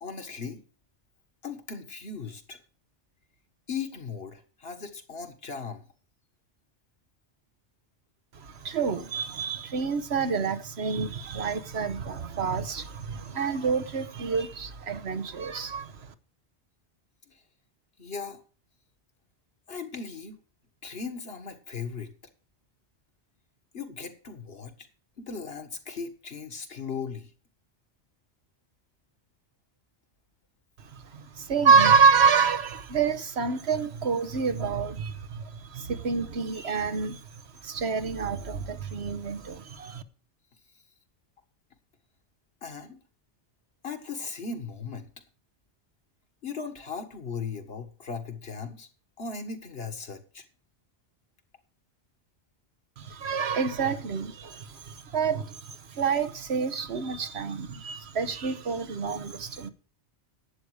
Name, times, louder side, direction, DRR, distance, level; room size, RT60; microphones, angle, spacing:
voice 1, 0.0-0.6 1.4-2.6 3.7-5.8 18.0-18.4 19.7-20.4 20.8-22.1 23.7-24.7 25.2-27.3 42.6-43.0 43.8-45.1 46.4-48.9 49.2-50.4, left 5 dB, 60° left, 1.8 m, -37 dB
voice 2, 8.3-16.1 30.9-37.2 37.6-40.0 53.0-59.7, right 6 dB, 65° right, 1.2 m, -27 dB
12.0 x 8.6 x 4.9 m
omnidirectional pair, 1.2 m